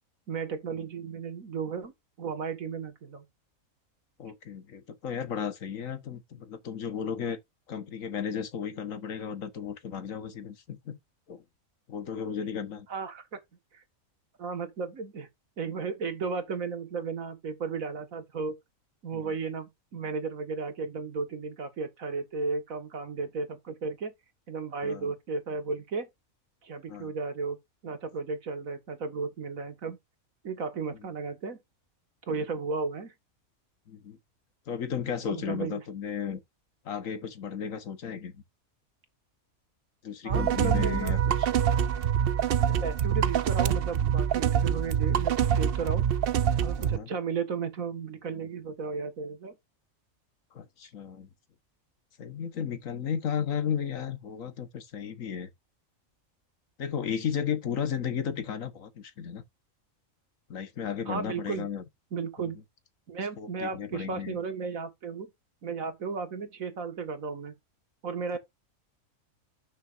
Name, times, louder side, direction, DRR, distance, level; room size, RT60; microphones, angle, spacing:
voice 1, 0.3-1.9 2.2-3.2 12.9-13.4 13.7-13.8 14.4-15.3 15.6-18.5 19.0-24.1 24.5-26.1 26.6-27.6 27.8-30.0 30.4-31.6 32.3-33.1 35.3-35.8 40.2-41.2 42.8-46.1 46.6-49.6 61.1-61.7 62.1-62.6 63.1-65.3 65.6-67.5 68.0-68.4, right 4 dB, 75° right, 2.0 m, -34 dB
voice 2, 4.2-7.4 7.7-11.0 11.3-11.4 11.9-12.9 19.1-19.3 24.8-25.1 26.9-27.1 33.9-34.2 34.7-36.4 36.8-38.4 40.0-41.5 46.8-47.1 50.5-51.3 52.2-55.5 56.8-59.4 60.5-61.8 63.4-64.4, left 7 dB, 70° left, 1.6 m, -34 dB
sound 1, 40.3-47.0, right 8 dB, 55° right, 0.7 m, -25 dB
12.5 x 6.2 x 2.6 m
omnidirectional pair, 1.5 m